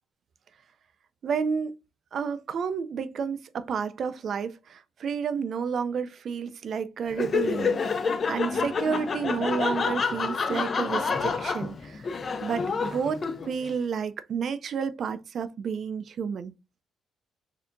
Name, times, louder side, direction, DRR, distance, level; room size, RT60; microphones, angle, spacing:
voice 1, 1.2-1.7 2.1-12.1 12.4-16.5, right 6 dB, 50° right, 0.4 m, -31 dB
Laughter, 7.1-13.7, left 5 dB, 35° left, 0.4 m, -28 dB
4.2 x 2.8 x 2.5 m
cardioid pair, 125°, 0 cm